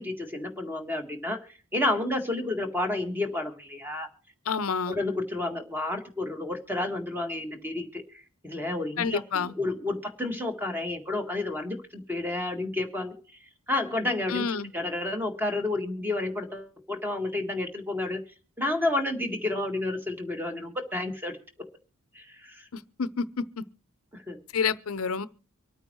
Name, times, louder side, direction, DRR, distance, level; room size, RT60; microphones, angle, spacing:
voice 1, 0.0-1.4 1.7-4.1 4.9-13.1 13.7-18.2 18.6-21.4 22.1-22.7 24.1-24.4, left 2 dB, 10° right, 1.8 m, -30 dB
voice 2, 4.5-5.0 9.0-9.5 14.3-14.7 22.7-23.3 24.5-25.3, left 5 dB, 70° left, 0.7 m, -28 dB
24.5 x 9.1 x 3.1 m
head